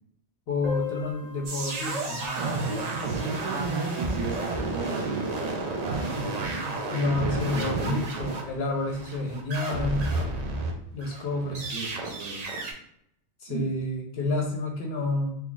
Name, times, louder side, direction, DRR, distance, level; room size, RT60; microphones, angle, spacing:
voice 1, 0.5-2.3 6.9-10.1 10.9-11.6 13.4-15.4, left 2 dB, 65° left, 1 dB, 0.8 m, -29 dB
Piano, 0.6-6.0 6.3-6.4 6.6-6.7 7.1-7.2 7.9-8.1, left 8 dB, ahead, 1.0 m, -41 dB
sound 1, 1.5-10.7 11.0-12.7, right 2 dB, 50° right, 0.5 m, -31 dB
voice 2, 2.2-6.6 7.2-8.3 11.1-12.5 13.5-13.7, right 4 dB, 90° right, -1 dB, 0.9 m, -36 dB
2.9 x 2.4 x 3.7 m, 0.72 s
omnidirectional pair, 1.2 m